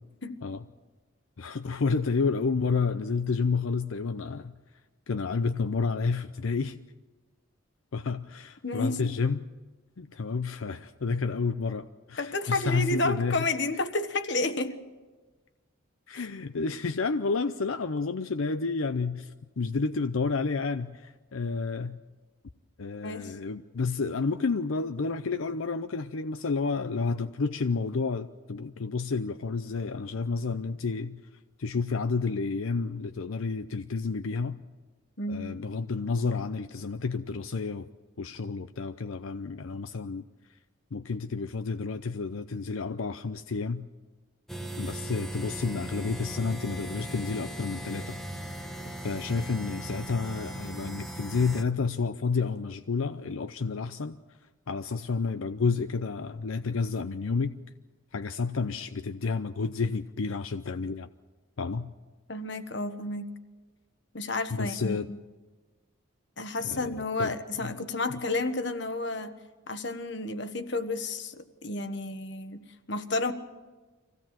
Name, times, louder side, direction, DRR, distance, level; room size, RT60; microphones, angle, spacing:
voice 1, 1.4-4.5 5.1-6.8 7.9-9.4 10.0-13.5 16.1-22.0 22.8-31.2 31.6-34.6 35.3-37.9 38.2-40.2 40.9-43.8 44.8-48.2 49.0-54.2 54.7-57.6 58.1-61.1 61.6-61.9 64.5-65.1 66.6-66.9 67.2-67.3 67.6-67.7, left 4 dB, 85° left, 10 dB, 0.6 m, -30 dB
voice 2, 8.6-9.1 12.2-14.8 16.1-16.3 23.0-23.3 35.2-35.4 62.3-63.3 64.1-65.0 66.4-69.3 69.7-72.6 72.9-73.3, left 2 dB, 60° left, 9 dB, 1.4 m, -31 dB
sound 1, 44.5-51.6, right 1 dB, ahead, 1.2 m, -38 dB
25.0 x 16.5 x 7.5 m, 1.3 s
head